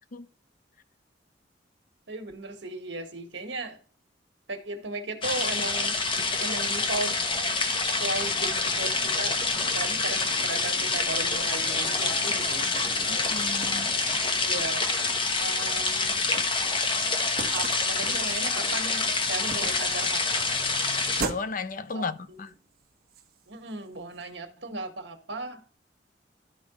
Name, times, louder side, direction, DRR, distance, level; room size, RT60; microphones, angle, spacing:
voice 1, 2.1-3.8 4.5-6.0 6.4-7.2 7.9-12.7 14.4-14.9 15.3-16.3 17.5-20.2 21.9-22.4 23.5-25.6, right 3 dB, 80° right, 1.5 m, -36 dB
sound 1, 5.2-21.2, left 3 dB, 30° left, 1.0 m, -27 dB
sound 2, 8.0-14.2, left 2 dB, 80° left, 2.4 m, -47 dB
sound 3, 12.0-24.4, right 3 dB, 55° right, 1.1 m, -43 dB
voice 2, 13.1-14.0 21.2-22.5, left 4 dB, 50° left, 0.6 m, -34 dB
13.0 x 4.6 x 3.0 m
head